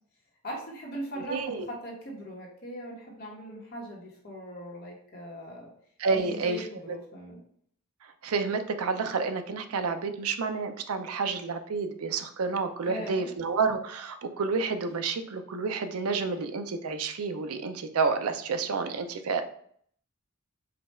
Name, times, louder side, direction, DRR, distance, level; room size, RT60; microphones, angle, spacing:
voice 1, 0.4-5.7 6.1-7.4 12.8-13.3, equal, 45° left, -3 dB, 1.2 m, -40 dB
voice 2, 1.3-1.7 6.0-7.0 8.2-19.4, right 4 dB, 80° right, 8 dB, 0.5 m, -30 dB
5.0 x 2.3 x 4.2 m, 0.63 s
head